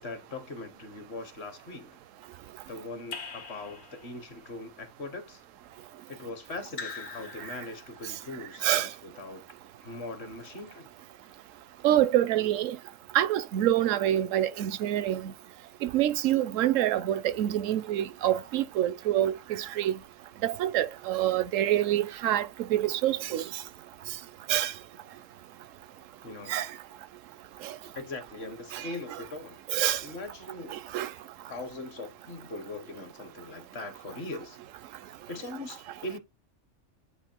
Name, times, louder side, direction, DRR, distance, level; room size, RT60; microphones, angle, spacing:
voice 1, 0.0-2.0 2.7-5.4 6.1-9.4 9.8-10.9 26.2-26.6 27.9-29.6 30.0-30.8 31.5-34.6 35.3-36.2, left 2 dB, 55° left, 1.4 m, -40 dB
Raindrop / Drip, 3.1-4.3 6.7-8.1, left 5 dB, 90° left, 1.5 m, -42 dB
voice 2, 11.8-12.8 13.1-15.2 15.8-19.9 20.4-23.4 24.5-24.7 26.5-26.7 29.7-30.0 30.7-31.1, right 12 dB, 80° right, 0.9 m, -26 dB
7.9 x 2.7 x 4.4 m
omnidirectional pair, 1.4 m